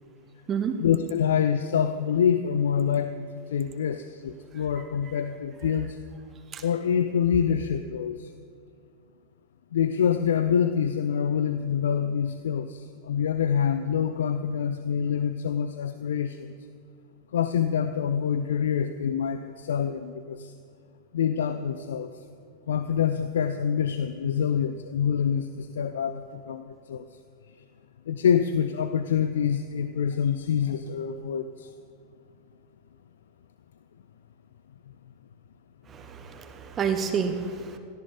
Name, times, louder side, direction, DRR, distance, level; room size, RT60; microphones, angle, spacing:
voice 1, 0.8-6.0 6.6-8.3 9.7-16.5 17.3-20.5 21.1-22.1 22.7-27.1 28.1-31.7, left 8 dB, 65° left, 10 dB, 0.6 m, -26 dB
voice 2, 35.9-37.8, right 6 dB, 25° right, 7 dB, 1.2 m, -29 dB
18.0 x 14.5 x 4.2 m, 2.3 s
figure-of-eight pair, 90°, 0 cm